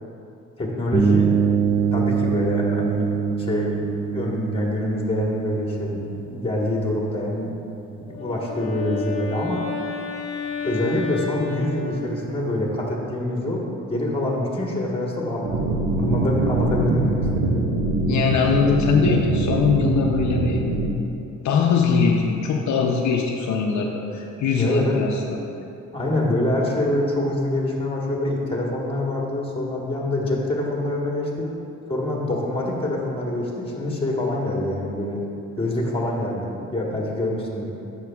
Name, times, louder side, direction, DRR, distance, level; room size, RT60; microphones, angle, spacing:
voice 1, 0.6-1.3 1.9-3.1 3.4-3.8 4.1-7.5 8.1-9.6 10.6-13.6 13.9-17.6 24.5-25.0 25.9-31.5 31.9-35.2 35.6-37.7, left 1 dB, 20° left, -2 dB, 1.4 m, -25 dB
sound 1, 0.9-8.7, right 6 dB, 20° right, 0.4 m, -25 dB
Wind instrument woodwind instrument, 7.9-12.5, left 5 dB, 50° left, 0.9 m, -32 dB
sound 2, 15.4-20.9, right 2 dB, 70° right, 0.9 m, -23 dB
voice 2, 18.1-20.6 21.4-25.4, left 5 dB, 70° left, 1 dB, 0.6 m, -21 dB
9.4 x 6.0 x 2.3 m, 2.7 s
cardioid pair, 90°, 30 cm